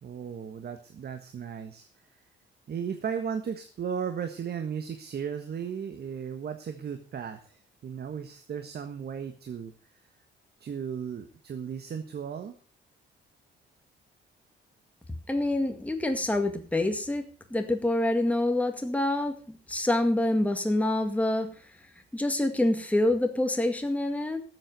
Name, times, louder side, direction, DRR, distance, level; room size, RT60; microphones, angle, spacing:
voice 1, 0.0-1.9 2.7-9.7 10.6-12.5, right 7 dB, 55° right, 7 dB, 1.5 m, -35 dB
voice 2, 15.3-21.5 22.1-24.4, left 1 dB, 5° left, 5 dB, 2.0 m, -26 dB
13.0 x 7.8 x 6.7 m, 0.40 s
cardioid pair, 90°, 20 cm